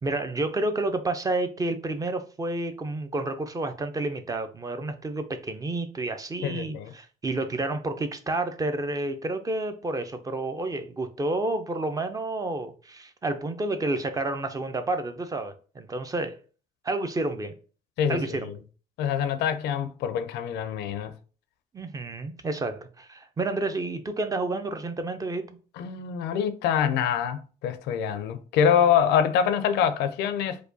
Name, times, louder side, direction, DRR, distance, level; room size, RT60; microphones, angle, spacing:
voice 1, 0.0-16.4 16.8-17.5 18.1-18.5 21.7-25.6, right 2 dB, 20° right, 0.4 m, -30 dB
voice 2, 6.4-6.9 18.0-18.5 19.0-21.1 25.8-30.6, left 8 dB, 80° left, 0.5 m, -25 dB
4.7 x 2.2 x 2.6 m
cardioid pair, 110°, 17 cm